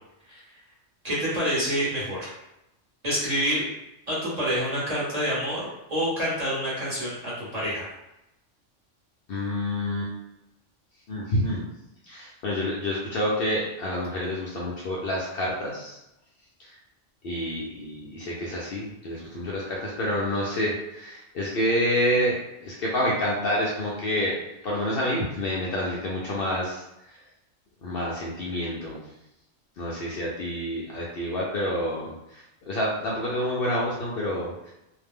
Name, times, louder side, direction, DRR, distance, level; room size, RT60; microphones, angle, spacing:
voice 1, 1.0-2.3 3.0-3.6 4.1-5.6 5.9-7.9, equal, 35° right, -8 dB, 0.9 m, -27 dB
voice 2, 9.3-10.1 11.1-11.7 12.1-16.0 16.6-16.7 17.2-22.3 22.6-24.4 24.6-26.8 27.8-29.0 29.8-34.7, left 1 dB, 60° left, -5 dB, 0.7 m, -28 dB
2.5 x 2.1 x 3.4 m, 0.89 s
omnidirectional pair, 1.3 m